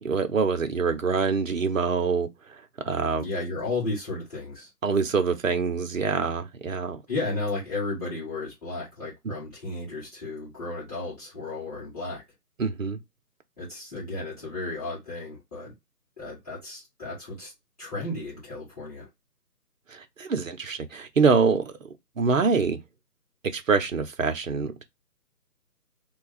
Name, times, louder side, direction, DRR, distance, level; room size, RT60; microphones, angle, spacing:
voice 1, 0.0-2.3 2.9-3.2 4.8-7.0 9.2-9.3 12.6-13.0 19.9-21.7 22.2-22.8 23.5-24.8, right 5 dB, 55° right, 0.7 m, -25 dB
voice 2, 3.2-4.7 7.1-12.2 13.6-15.7 16.2-17.5 17.8-19.1, left 2 dB, 20° left, 2.0 m, -33 dB
3.2 x 2.3 x 3.9 m
figure-of-eight pair, 160°, 48 cm